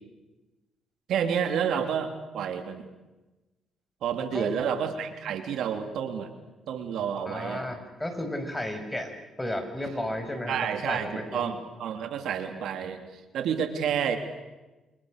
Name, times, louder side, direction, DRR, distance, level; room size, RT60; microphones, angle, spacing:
voice 1, 1.1-2.9 4.0-6.3 6.7-7.7 10.5-14.2, right 8 dB, 75° right, 6 dB, 3.2 m, -30 dB
voice 2, 4.3-4.6 7.2-11.5, left 1 dB, 10° left, 6 dB, 6.2 m, -33 dB
28.5 x 28.0 x 6.7 m, 1.1 s
cardioid pair, 85°, 0 cm